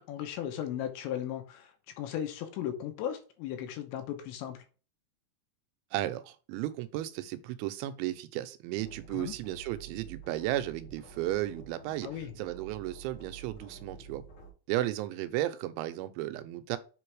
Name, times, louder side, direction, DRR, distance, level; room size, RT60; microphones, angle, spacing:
voice 1, 0.0-4.6 9.1-9.3 12.0-12.3, left 10 dB, 85° left, 3.1 m, -36 dB
voice 2, 5.9-12.1 12.4-14.2 14.7-16.8, right 14 dB, 85° right, 2.9 m, -34 dB
sound 1, 8.8-14.5, right 5 dB, 60° left, 1.1 m, -49 dB
7.6 x 3.3 x 4.7 m
omnidirectional pair, 5.3 m